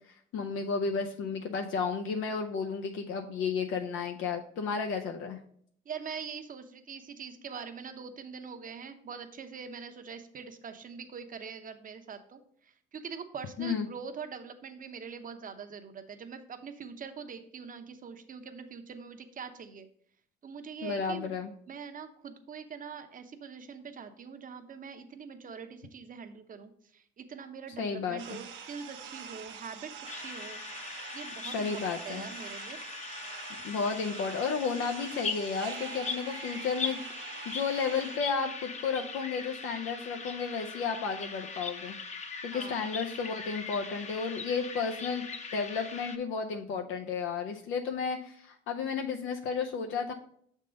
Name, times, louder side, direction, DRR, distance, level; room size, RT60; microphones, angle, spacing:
voice 1, 0.3-5.4 13.6-13.9 20.8-21.5 27.8-28.4 31.5-32.2 33.6-41.9 42.4-50.1, left 5 dB, 90° left, 3 dB, 0.6 m, -33 dB
voice 2, 5.9-19.9 20.4-21.4 21.7-32.8 42.5-42.9, right 6 dB, 45° right, 8 dB, 0.8 m, -43 dB
sound 1, 28.2-38.2, right 6 dB, 75° right, 0.8 m, -45 dB
sound 2, 30.0-46.2, left 4 dB, 35° left, 0.7 m, -40 dB
6.7 x 3.7 x 5.0 m, 0.64 s
cardioid pair, 90°, 20 cm